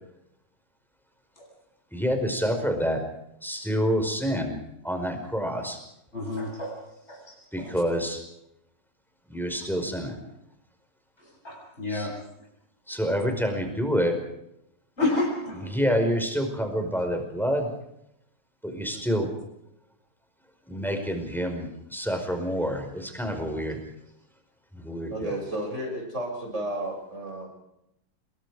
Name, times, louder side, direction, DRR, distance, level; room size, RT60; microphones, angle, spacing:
voice 1, 1.9-3.0 3.4-4.6 4.8-5.8 7.5-8.2 9.3-10.2 11.9-12.1 12.9-14.1 15.7-17.7 18.6-19.3 20.7-23.8 24.7-25.3, equal, ahead, 4 dB, 5.0 m, -27 dB
voice 2, 6.1-6.8 7.0-7.8 11.2-12.1 15.0-15.7, left 2 dB, 35° left, 0 dB, 7.3 m, -30 dB
voice 3, 25.1-27.5, right 1 dB, 35° right, 0 dB, 7.3 m, -32 dB
27.5 x 23.5 x 5.0 m, 0.80 s
omnidirectional pair, 2.1 m